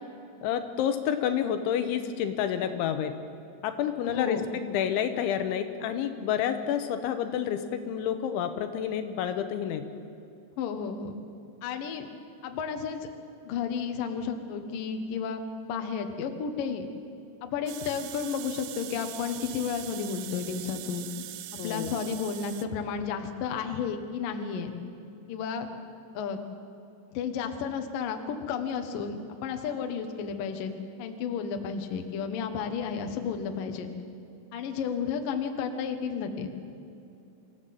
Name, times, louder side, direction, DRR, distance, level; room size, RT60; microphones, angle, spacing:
voice 1, 0.4-3.1 3.6-9.8 21.6-22.0, left 9 dB, 80° left, 8 dB, 3.2 m, -29 dB
voice 2, 4.0-4.5 10.6-11.2 11.6-12.1 12.4-13.1 13.4-16.9 17.4-21.2 21.6-24.8 25.3-25.7 26.1-26.4 27.1-30.7 31.0-33.9 34.5-36.5, left 6 dB, 65° left, 6 dB, 2.3 m, -32 dB
sound 1, 17.7-22.7, right 14 dB, 85° right, 2.3 m, -42 dB
26.5 x 15.0 x 7.8 m, 2.7 s
omnidirectional pair, 5.6 m